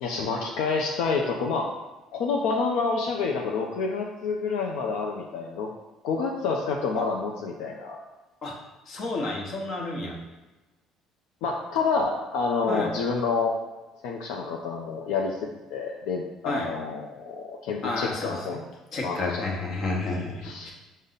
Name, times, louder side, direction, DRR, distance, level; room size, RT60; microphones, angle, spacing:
voice 1, 0.0-1.7 2.1-5.7 6.0-8.0 11.4-13.5 14.0-15.4 15.7-18.6 19.0-19.4 20.4-20.7, left 4 dB, 85° left, 0 dB, 0.4 m, -28 dB
voice 2, 8.9-10.2 12.7-12.9 16.4-16.7 17.8-18.5 18.9-20.7, left 2 dB, 50° left, -1 dB, 1.0 m, -31 dB
5.2 x 2.0 x 3.9 m, 1.1 s
cardioid pair, 110°, 0 cm